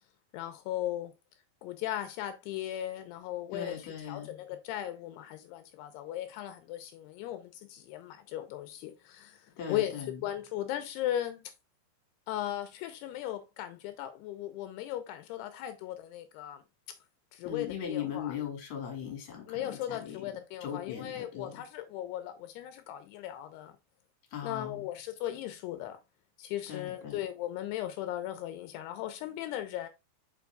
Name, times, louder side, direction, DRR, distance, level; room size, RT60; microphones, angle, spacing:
voice 1, 0.3-1.1 1.6-9.9 10.2-11.5 12.3-16.6 17.3-18.3 19.5-23.7 24.4-26.0 26.4-29.9, left 12 dB, 85° left, 2.6 m, -37 dB
voice 2, 3.5-4.3 9.6-10.2 17.4-20.3 20.6-21.6 24.3-24.9 26.7-27.2, left 8 dB, 50° left, 2.8 m, -39 dB
7.0 x 6.0 x 2.3 m
omnidirectional pair, 4.7 m